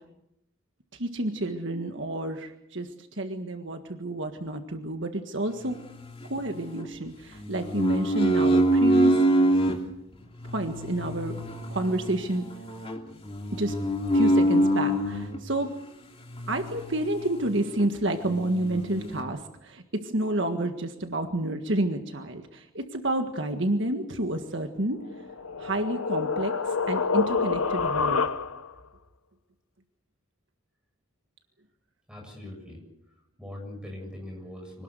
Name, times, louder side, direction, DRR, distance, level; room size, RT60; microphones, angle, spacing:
voice 1, 0.9-5.8 6.2-9.2 10.5-12.5 13.5-13.8 14.1-15.8 16.5-25.0 25.6-28.3, right 1 dB, 55° right, 6 dB, 1.7 m, -30 dB
sound 1, 5.6-6.9 7.4-9.8 10.4-15.4 16.3-17.5 17.8-17.9 18.2-19.2, right 1 dB, 25° left, 2.8 m, -25 dB
sound 2, 25.0-28.8, left 5 dB, 80° left, 1.0 m, -27 dB
voice 2, 32.1-32.8 33.4-34.8, left 1 dB, 5° right, 0 dB, 7.3 m, -41 dB
25.5 x 19.0 x 8.1 m, 0.81 s
head